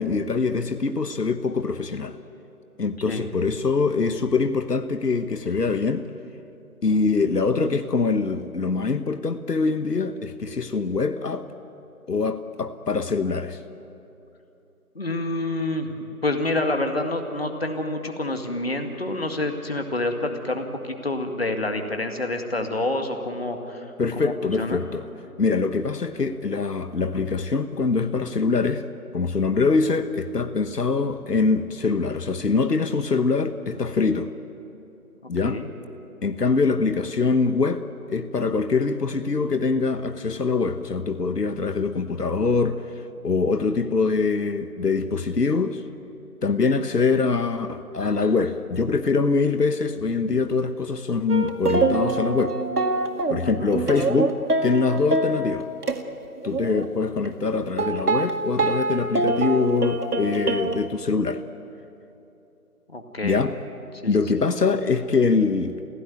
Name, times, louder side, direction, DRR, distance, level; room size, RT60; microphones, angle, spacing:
voice 1, 0.0-2.2 2.8-6.0 6.8-11.5 12.1-13.6 24.0-25.0 25.4-28.8 29.1-34.3 35.3-35.6 36.2-42.8 43.2-45.8 46.4-52.6 53.3-55.7 56.4-61.4 63.2-63.5 64.0-65.9, left 4 dB, 85° left, 9 dB, 1.3 m, -24 dB
voice 2, 15.0-24.9 35.4-35.7 53.4-53.7 62.9-63.4 64.0-64.2, left 2 dB, 40° left, 5 dB, 2.0 m, -28 dB
sound 1, 51.3-56.0 56.4-56.8 57.3-57.4 57.8-60.8, right 2 dB, 75° right, 2.0 m, -25 dB
30.0 x 17.0 x 9.3 m, 2.9 s
figure-of-eight pair, 180°, 46 cm